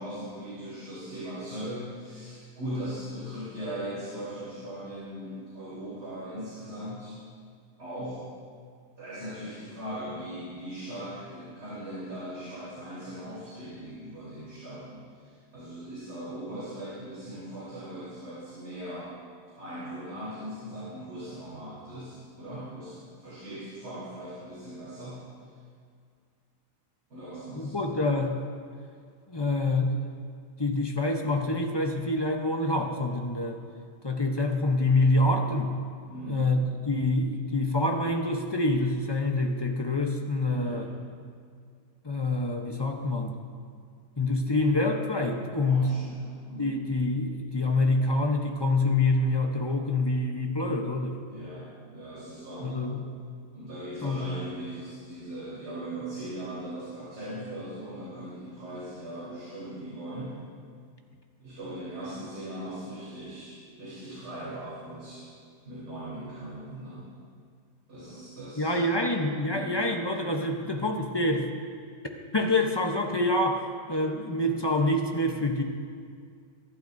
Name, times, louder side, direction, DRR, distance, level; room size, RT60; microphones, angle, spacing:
voice 1, 0.0-7.2 7.8-8.3 9.0-19.2 19.6-25.2 27.1-27.8 36.1-36.5 40.5-40.9 45.6-46.8 51.3-53.0 53.5-60.4 61.4-65.3 65.6-67.0 67.9-69.1 69.5-69.8, right 1 dB, 85° right, -10 dB, 4.4 m, -39 dB
voice 2, 27.5-28.4 29.3-30.0 30.6-33.6 34.0-35.7 36.3-40.9 42.0-43.3 44.2-45.9 46.6-51.2 52.6-53.0 54.0-54.2 68.6-71.5 72.3-73.6 73.9-75.6, left 2 dB, 30° left, 2 dB, 0.5 m, -26 dB
24.0 x 11.5 x 2.6 m, 2.1 s
omnidirectional pair, 1.7 m